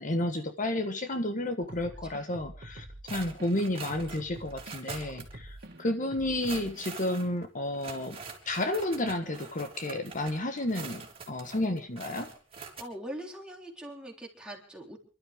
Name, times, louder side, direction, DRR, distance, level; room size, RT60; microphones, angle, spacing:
voice 1, 0.0-8.2 8.5-12.3, left 1 dB, 45° left, 7 dB, 1.4 m, -31 dB
sound 1, 1.7-3.5 3.9-6.8, right 1 dB, 55° right, 2.2 m, -47 dB
sound 2, 3.1-5.3 5.6-5.7 6.2-12.8, right 5 dB, 30° right, 3.6 m, -45 dB
voice 2, 12.8-15.0, right 1 dB, 5° right, -1 dB, 3.9 m, -42 dB
28.5 x 12.5 x 3.7 m, 0.38 s
head